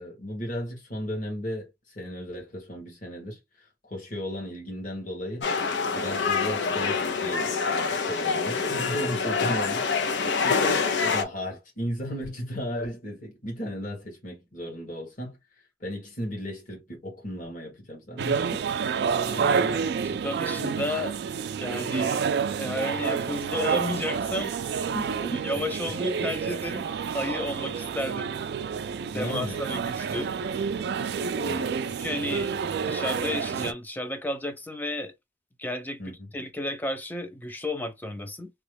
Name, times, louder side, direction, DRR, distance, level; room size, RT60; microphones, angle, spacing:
voice 1, 0.0-5.5 5.9-10.0 10.4-15.4 15.8-18.7 19.6-20.0 24.9-25.5 28.0-28.1 29.1-29.6 31.3-31.8 36.0-36.3, equal, 50° left, 1.5 m, -35 dB
sound 1, 5.4-11.2, left 5 dB, 90° left, 0.6 m, -26 dB
sound 2, 18.2-33.7, right 6 dB, 65° right, 0.3 m, -29 dB
voice 2, 19.1-19.8 20.2-21.2 21.6-22.2 22.6-24.9 25.3-26.9 27.1-28.3 29.1-30.3 32.0-32.5 32.9-35.1 35.6-36.0 36.3-38.5, left 1 dB, 10° left, 0.5 m, -32 dB
3.0 x 2.3 x 3.3 m
head